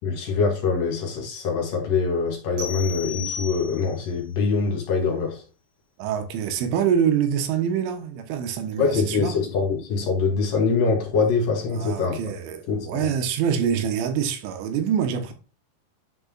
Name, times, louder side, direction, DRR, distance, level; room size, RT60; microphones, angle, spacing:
voice 1, 0.0-5.4 8.8-12.2 12.7-13.1, left 4 dB, 50° left, 3.4 m, -24 dB
sound 1, 2.6-4.1, left 6 dB, 35° right, 2.6 m, -34 dB
voice 2, 6.0-9.4 11.7-15.3, right 8 dB, 85° right, 3.6 m, -25 dB
10.5 x 5.5 x 2.4 m
omnidirectional pair, 5.4 m